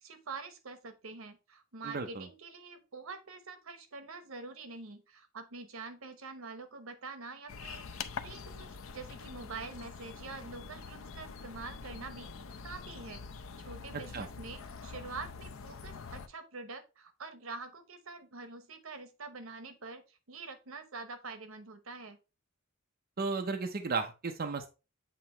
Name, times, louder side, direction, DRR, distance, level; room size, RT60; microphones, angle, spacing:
voice 1, 0.0-12.3 12.6-13.2 13.6-22.2, right 4 dB, 85° right, 9 dB, 1.0 m, -46 dB
voice 2, 1.8-2.3 14.1-14.3 23.2-24.7, right 4 dB, 45° right, 5 dB, 0.6 m, -34 dB
sound 1, 7.5-16.3, left 5 dB, 75° left, 0.6 m, -45 dB
7.7 x 2.9 x 4.3 m, 0.30 s
head